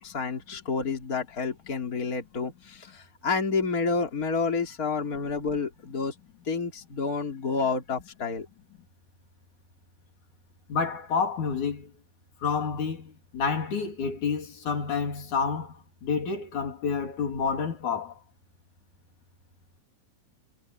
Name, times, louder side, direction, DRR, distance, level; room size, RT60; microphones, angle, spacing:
voice 1, 0.0-6.1 6.5-8.5, left 4 dB, 30° left, 3.4 m, -29 dB
voice 2, 10.7-11.9 12.4-18.2, left 5 dB, 80° left, 4.7 m, -29 dB
omnidirectional pair, 3.4 m